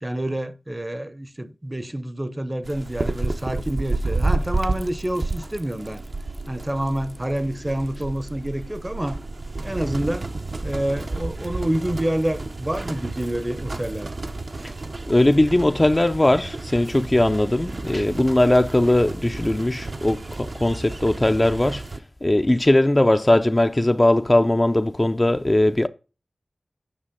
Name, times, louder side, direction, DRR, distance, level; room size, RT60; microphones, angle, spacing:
voice 1, 0.0-6.0 6.5-9.2 9.6-10.3 10.6-14.1, right 1 dB, 25° right, 0.7 m, -27 dB
sound 1, 2.6-22.0, right 2 dB, 60° right, 0.7 m, -31 dB
voice 2, 15.1-21.8 22.2-25.9, left 1 dB, 25° left, 0.4 m, -19 dB
8.8 x 6.1 x 3.7 m
wide cardioid pair, 60°, 0 cm